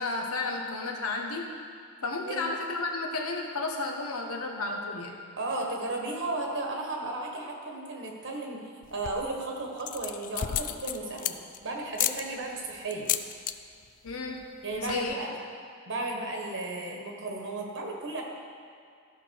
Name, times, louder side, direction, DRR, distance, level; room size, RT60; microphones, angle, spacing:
voice 1, 0.0-1.5 2.0-5.2 14.0-14.4 14.8-15.2, left 3 dB, 70° left, 1 dB, 1.3 m, -32 dB
voice 2, 5.4-11.4 11.6-13.1 14.6-15.3 15.8-18.2, right 2 dB, 60° right, 0 dB, 1.4 m, -34 dB
sound 1, 8.8-9.3 9.8-11.6 11.9-12.2 12.9-13.5 13.8-14.1 14.4-14.5 14.7-15.1, left 11 dB, 35° left, 0.3 m, -32 dB
14.5 x 6.0 x 4.7 m, 2.3 s
head